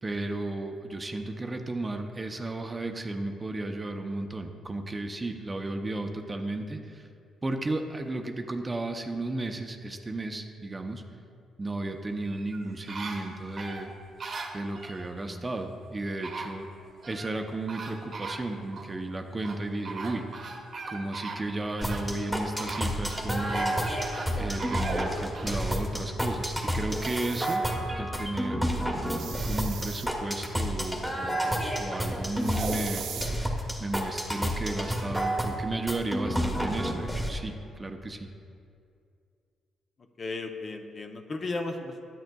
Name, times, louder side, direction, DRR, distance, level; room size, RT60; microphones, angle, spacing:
voice 1, 0.0-7.1 7.4-11.0 11.6-13.9 14.5-16.7 17.1-20.2 20.9-23.8 24.4-27.6 28.0-28.7 29.4-33.2 33.8-38.3, right 2 dB, 20° right, 5 dB, 0.6 m, -34 dB
sound 1, 12.2-15.1 15.8-15.9 16.2-17.4 17.7-18.9 19.4-25.7 26.2-26.3, right 4 dB, 45° right, 0.9 m, -40 dB
sound 2, 21.8-37.3, equal, 5° left, 1.1 m, -30 dB
sound 3, 26.9-27.6 29.1-30.1 32.4-33.3, right 8 dB, 75° right, 0.5 m, -39 dB
voice 2, 40.2-42.0, left 3 dB, 40° left, 4 dB, 0.6 m, -34 dB
10.5 x 9.0 x 2.3 m, 2.4 s
cardioid pair, 90°, 0 cm